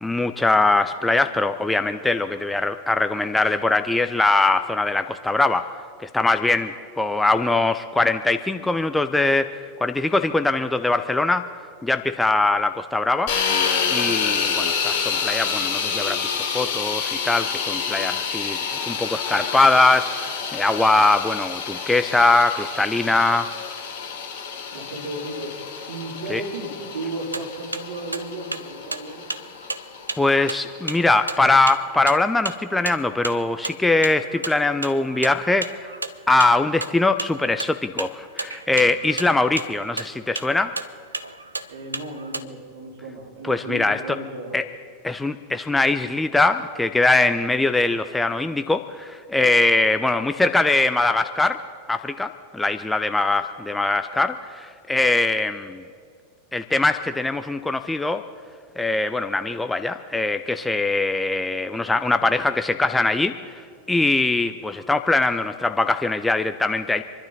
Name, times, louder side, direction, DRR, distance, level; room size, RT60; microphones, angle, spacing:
voice 1, 0.0-5.7 6.0-9.6 9.8-11.5 11.8-13.3 13.9-23.5 26.3-26.4 30.2-35.9 36.3-40.8 43.5-44.2 44.5-44.6 45.0-51.6 51.9-55.8 56.5-58.2 58.8-63.6 63.9-67.0, left 2 dB, 5° left, 9 dB, 0.6 m, -22 dB
sound 1, 13.3-31.2, left 6 dB, 50° left, 3.1 m, -28 dB
voice 2, 24.7-25.6 25.9-29.3 41.7-44.6, right 2 dB, 55° right, -2 dB, 3.9 m, -34 dB
sound 2, 27.2-42.4, right 3 dB, 80° right, 0.6 m, -33 dB
27.0 x 11.5 x 4.2 m, 2.2 s
figure-of-eight pair, 90°, 0 cm